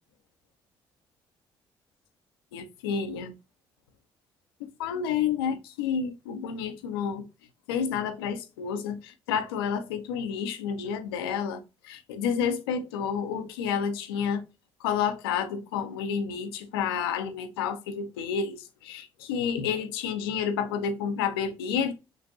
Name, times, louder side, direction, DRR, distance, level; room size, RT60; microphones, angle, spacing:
voice 1, 2.5-3.3 4.6-7.2 7.7-9.0 9.3-11.6 11.8-14.4 14.8-18.6 18.8-21.9, left 7 dB, 75° left, 0.7 m, -30 dB
5.4 x 3.3 x 2.9 m
figure-of-eight pair, 45°, 13 cm